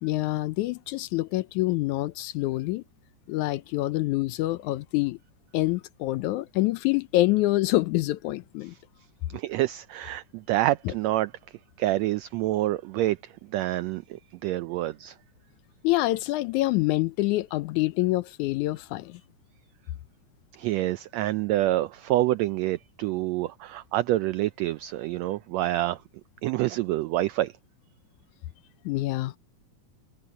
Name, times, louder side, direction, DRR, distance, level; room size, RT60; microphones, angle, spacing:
voice 1, 0.0-2.8 3.3-5.2 5.5-8.7 10.9-11.0 15.8-19.2 28.9-29.4, left 18 dB, 80° left, 2.0 m, -26 dB
voice 2, 9.3-11.3 11.8-15.1 20.6-26.0 26.4-27.5, right 16 dB, 85° right, 1.5 m, -27 dB
omnidirectional pair, 3.6 m